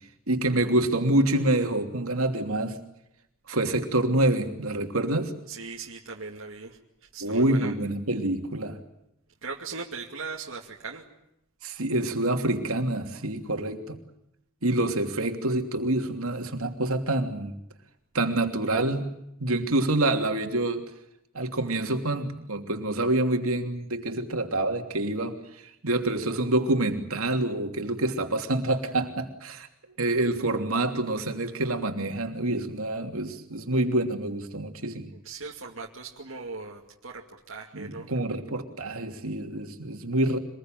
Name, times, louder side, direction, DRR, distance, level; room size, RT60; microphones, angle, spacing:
voice 1, 0.3-2.8 3.5-5.3 7.2-8.8 11.6-14.0 14.6-17.5 18.1-19.1 19.4-20.8 21.3-29.7 30.0-35.1 37.7-40.4, right 1 dB, 85° right, 5 dB, 3.0 m, -27 dB
voice 2, 5.5-7.7 9.4-11.0 29.8-30.0 35.2-38.1, right 4 dB, 65° right, -1 dB, 2.4 m, -39 dB
26.0 x 21.0 x 9.1 m, 0.80 s
head